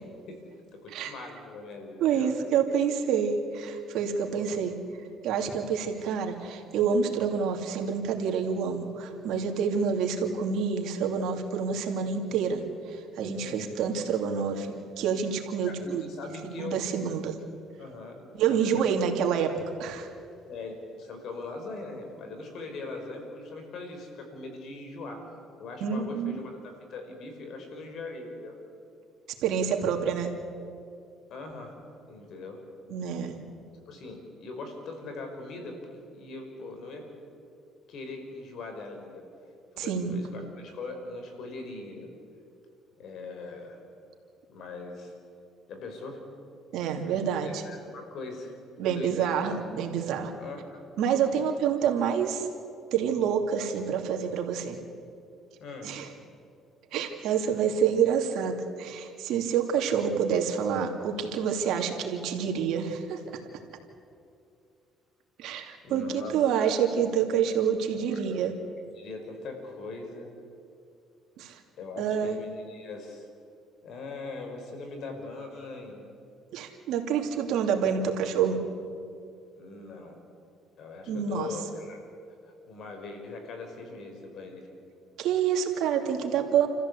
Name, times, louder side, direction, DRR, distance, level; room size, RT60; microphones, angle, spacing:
voice 1, 0.7-2.3 4.3-4.5 13.3-13.7 15.6-16.8 17.8-19.0 20.4-25.2 25.6-28.5 29.7-30.0 31.3-31.8 32.1-32.6 33.8-35.8 36.1-37.0 37.9-39.2 39.8-42.1 43.0-43.8 44.5-45.1 45.7-46.2 47.1-48.6 48.9-49.3 50.4-50.8 55.6-55.9 65.8-66.7 68.0-68.2 68.9-70.3 71.8-73.3 73.8-76.1 79.6-80.2 80.8-82.0 82.4-84.7, left 3 dB, 65° left, 4 dB, 5.2 m, -41 dB
voice 2, 2.0-4.8 5.2-16.0 16.4-17.3 18.3-19.5 19.8-20.1 25.8-26.4 29.4-30.3 32.9-33.3 39.8-40.1 46.7-47.6 48.8-50.3 51.0-52.5 52.9-54.8 55.8-56.1 56.9-63.2 65.4-68.5 71.4-71.5 72.0-72.4 76.5-78.6 81.1-81.5 85.2-86.7, right 7 dB, 75° right, 3 dB, 2.7 m, -27 dB
29.0 x 14.5 x 8.3 m, 2.5 s
cardioid pair, 100°, 0 cm